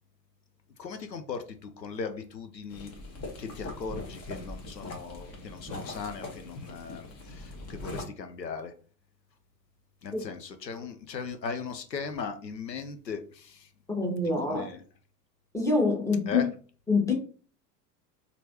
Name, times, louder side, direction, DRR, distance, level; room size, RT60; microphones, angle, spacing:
voice 1, 0.8-2.9 3.4-8.7 10.0-13.7 14.2-14.8 16.3-16.5, left 5 dB, 85° left, 0.7 m, -38 dB
sound 1, 2.7-8.0, left 2 dB, 30° left, 1.2 m, -41 dB
voice 2, 13.9-14.6 15.5-16.4 16.9-17.1, left 3 dB, 5° left, 1.1 m, -25 dB
4.4 x 2.7 x 2.8 m
figure-of-eight pair, 85°, 49 cm